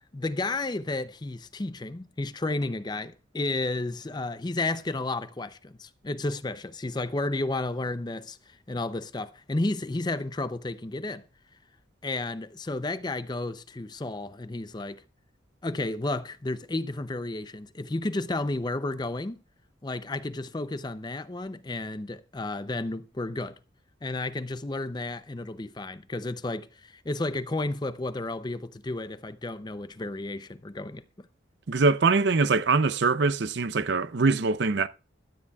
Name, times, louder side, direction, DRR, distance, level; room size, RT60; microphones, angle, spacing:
voice 1, 0.1-11.2 12.0-15.0 15.6-19.4 19.8-23.6 24.0-31.3, left 2 dB, 20° left, 0.5 m, -32 dB
voice 2, 31.7-34.9, right 4 dB, 60° right, 0.6 m, -23 dB
15.5 x 12.0 x 2.3 m
head